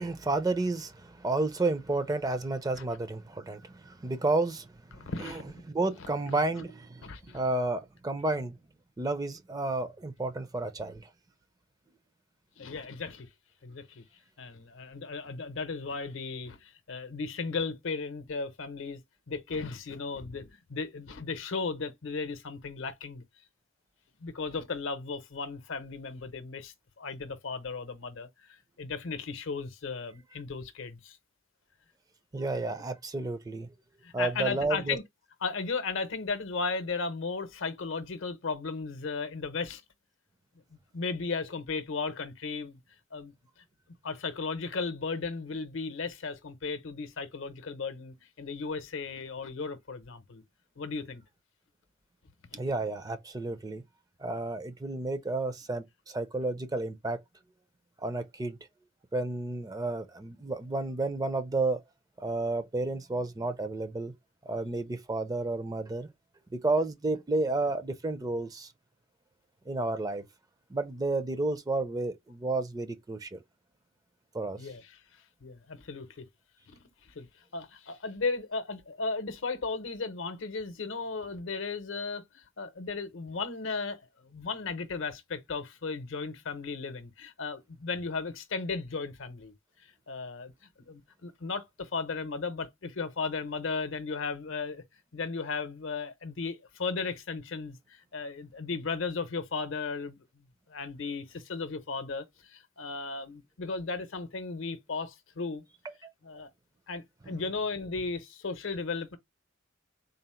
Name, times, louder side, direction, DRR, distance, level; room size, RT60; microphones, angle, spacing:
voice 1, 0.0-4.7 4.9-7.1 7.3-8.5 9.0-11.1 32.3-33.7 34.1-35.0 52.6-53.8 54.2-57.2 58.0-58.6 59.1-61.8 62.2-64.1 64.5-66.1 66.5-68.7 69.7-70.2 70.7-73.4 74.3-74.6 105.9-106.1 107.2-107.5, right 2 dB, 20° right, 0.4 m, -31 dB
voice 2, 4.9-5.6 7.0-7.4 12.6-13.3 13.6-14.0 14.4-19.0 19.3-23.2 24.2-31.2 34.0-35.0 35.4-39.8 40.9-42.8 43.1-43.3 44.0-50.4 50.8-51.2 52.5-52.6 74.6-75.0 75.4-76.3 76.7-76.9 77.1-77.3 77.5-89.5 90.1-90.5 90.9-94.8 95.1-105.6 106.2-106.5 106.9-109.2, left 4 dB, 65° left, 0.7 m, -35 dB
3.9 x 2.0 x 4.2 m
head